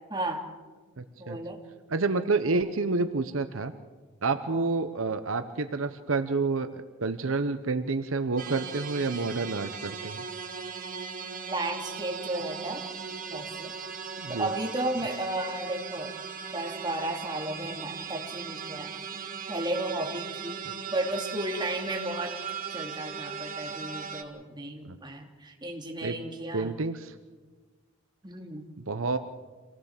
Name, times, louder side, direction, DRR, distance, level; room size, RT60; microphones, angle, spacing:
voice 1, 0.1-0.4 1.2-1.6 4.5-4.7 11.5-12.8 13.3-13.7 14.3-16.2 16.5-18.9 19.5-22.3 22.7-26.7 28.2-28.7, right 1 dB, 20° right, 2 dB, 2.7 m, -34 dB
voice 2, 1.0-1.4 1.9-3.7 4.2-10.2 14.2-14.5 24.9-25.0 26.0-26.1 26.5-27.1 28.9-29.2, right 3 dB, 75° right, 10 dB, 0.9 m, -29 dB
sound 1, 8.4-24.2, right 6 dB, 45° right, 1.8 m, -38 dB
26.0 x 17.0 x 7.3 m, 1.4 s
head